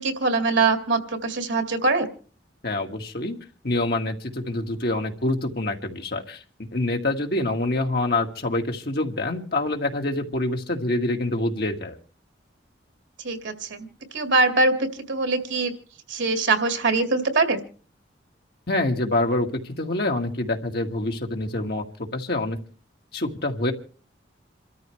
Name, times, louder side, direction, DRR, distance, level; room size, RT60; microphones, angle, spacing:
voice 1, 0.0-2.1 13.2-15.7 16.1-17.6, right 3 dB, 80° right, 7 dB, 2.2 m, -23 dB
voice 2, 2.6-3.4 3.6-6.4 6.7-12.0 18.7-22.6 23.1-23.7, left 2 dB, 55° left, 3 dB, 1.9 m, -26 dB
28.0 x 13.5 x 3.2 m, 0.39 s
head